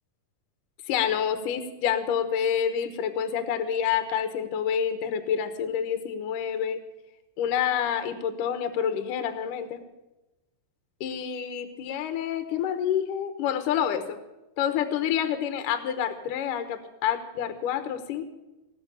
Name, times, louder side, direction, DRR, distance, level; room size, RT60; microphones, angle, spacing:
voice 1, 0.9-6.8 7.4-9.8 11.0-14.2 14.6-18.2, left 8 dB, 70° left, 9 dB, 2.5 m, -28 dB
18.0 x 7.9 x 8.4 m, 1.0 s
omnidirectional pair, 4.1 m